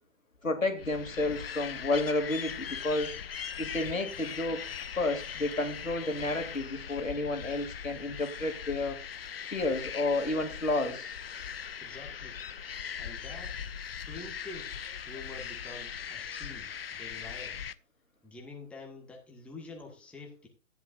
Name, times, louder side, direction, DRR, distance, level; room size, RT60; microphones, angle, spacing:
voice 1, 0.4-3.2 3.6-4.7 5.0-9.0 9.5-11.1, left 2 dB, 80° left, 2.9 m, -31 dB
sound 1, 0.8-17.7, left 7 dB, 45° left, 0.7 m, -40 dB
voice 2, 11.8-12.4 13.0-13.6 14.1-17.6 18.2-20.5, left 3 dB, 5° left, 1.6 m, -47 dB
14.0 x 11.0 x 2.6 m
figure-of-eight pair, 135°, 40 cm